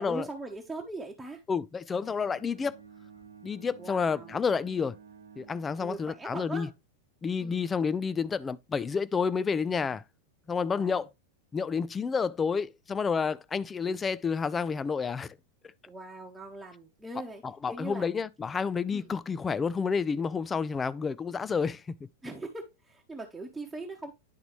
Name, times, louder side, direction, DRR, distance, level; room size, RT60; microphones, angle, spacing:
voice 1, 0.0-1.4 3.8-4.4 5.8-6.7 7.4-7.6 10.7-11.1 15.9-18.1 18.9-19.1 22.2-24.1, right 2 dB, 5° right, 1.0 m, -41 dB
voice 2, 1.5-2.8 3.4-5.0 5.4-6.7 7.2-10.0 10.5-11.1 11.5-15.4 17.4-21.8, left 5 dB, 15° left, 0.4 m, -30 dB
Bowed string instrument, 2.0-6.3, right 7 dB, 70° right, 0.9 m, -52 dB
10.0 x 3.9 x 3.1 m
figure-of-eight pair, 90°, 0 cm